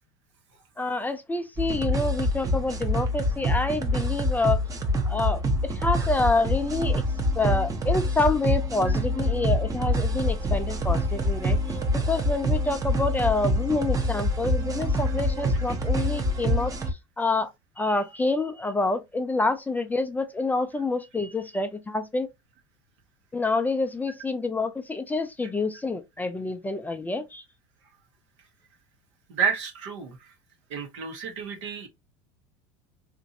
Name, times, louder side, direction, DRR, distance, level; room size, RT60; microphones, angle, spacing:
voice 1, 0.8-4.6 5.1-7.0 7.4-11.6 12.1-16.7 17.2-17.5 17.8-22.3 23.3-27.4, left 3 dB, 10° left, 0.3 m, -27 dB
sound 1, 1.6-16.9, equal, 20° right, 0.7 m, -26 dB
voice 2, 29.3-30.3 30.7-31.9, right 6 dB, 75° right, 1.0 m, -30 dB
2.9 x 2.6 x 2.6 m
hypercardioid pair, 100°, 15 cm